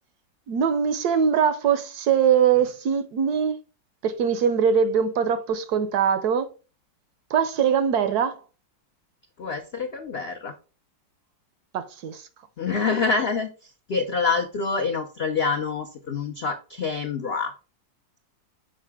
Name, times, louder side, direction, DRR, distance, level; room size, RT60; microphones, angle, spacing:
voice 1, 0.5-3.6 4.0-6.5 7.3-8.4 11.7-12.3, right 7 dB, 70° right, 1.0 m, -22 dB
voice 2, 9.4-10.5 12.6-17.5, left 4 dB, 70° left, 0.5 m, -26 dB
6.5 x 4.8 x 3.5 m
omnidirectional pair, 2.0 m